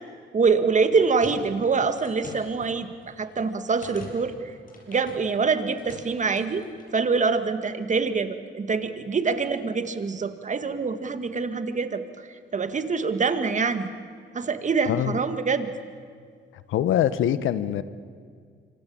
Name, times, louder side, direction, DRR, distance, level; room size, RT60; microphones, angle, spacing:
voice 1, 0.3-4.5 4.9-6.6 6.9-12.0 12.5-13.9 14.3-15.7, right 5 dB, 40° right, 10 dB, 2.0 m, -25 dB
sound 1, 0.7-7.1, left 2 dB, 45° left, 7.6 m, -46 dB
voice 2, 14.9-15.2 16.7-17.8, left 11 dB, 80° left, 14 dB, 1.2 m, -23 dB
26.0 x 26.0 x 8.9 m, 2.1 s
cardioid pair, 90°, 20 cm